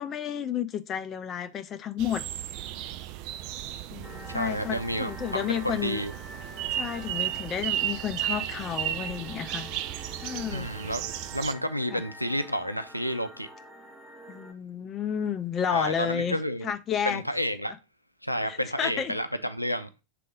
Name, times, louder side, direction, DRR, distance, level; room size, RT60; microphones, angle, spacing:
voice 1, 0.0-2.2 3.9-6.0 6.7-9.7 10.2-10.7 11.9-12.0 14.3-16.4 16.6-17.2 18.5-19.1, left 8 dB, 25° left, 0.5 m, -31 dB
sound 1, 2.0-11.5, right 12 dB, 45° right, 0.5 m, -34 dB
sound 2, 4.0-14.5, equal, 5° right, 1.3 m, -47 dB
voice 2, 4.3-6.1 10.5-11.0 11.3-13.5 15.7-16.7 17.1-17.7 18.2-19.9, equal, 90° left, 0.6 m, -30 dB
6.7 x 3.7 x 5.0 m
figure-of-eight pair, 90°, 0 cm